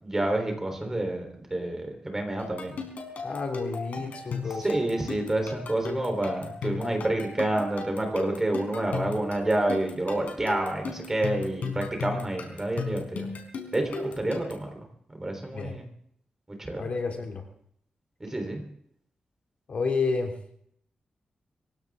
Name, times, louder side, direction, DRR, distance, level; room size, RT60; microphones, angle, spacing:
voice 1, 0.0-2.7 4.6-13.3 13.7-14.7 15.2-15.9 16.6-16.9 18.2-18.6, right 1 dB, 15° right, 4 dB, 3.6 m, -28 dB
sound 1, 2.4-14.7, left 4 dB, 75° left, 4.2 m, -36 dB
voice 2, 3.2-4.7 15.5-15.8 16.7-17.4 19.7-20.4, left 4 dB, 50° left, 3 dB, 2.7 m, -30 dB
24.5 x 16.0 x 3.6 m, 0.68 s
wide cardioid pair, 170°, 3 cm